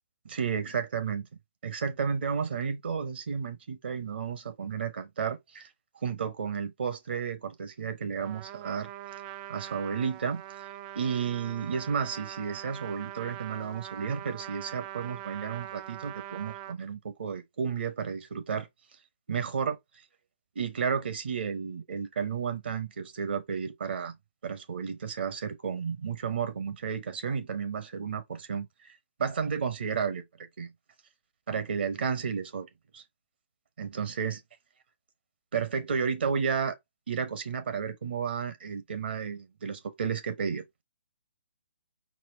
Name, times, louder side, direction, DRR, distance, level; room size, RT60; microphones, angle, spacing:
voice 1, 0.2-1.3 1.6-5.7 6.0-8.9 9.5-10.4 10.9-18.7 19.3-19.8 20.5-24.2 24.4-28.9 29.2-30.7 31.5-32.7 32.9-33.0 33.8-34.4 35.5-36.8 37.1-40.6, right 6 dB, 65° right, 1.0 m, -32 dB
Trumpet, 8.2-16.8, right 13 dB, 25° right, 0.3 m, -42 dB
4.2 x 2.2 x 4.2 m
hypercardioid pair, 140°, 6 cm